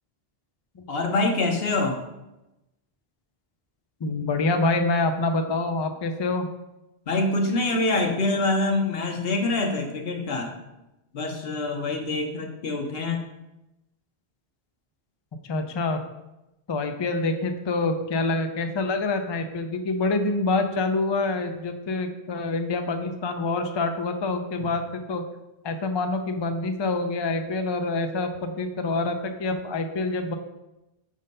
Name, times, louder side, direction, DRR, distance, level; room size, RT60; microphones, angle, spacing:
voice 1, 0.9-2.0 7.1-10.5 11.1-13.2, left 2 dB, 70° left, 2 dB, 1.1 m, -25 dB
voice 2, 4.0-6.5 15.4-16.0 16.7-25.2 25.6-30.4, left 3 dB, 40° left, 6 dB, 0.4 m, -26 dB
5.4 x 3.8 x 5.3 m, 0.95 s
omnidirectional pair, 1.0 m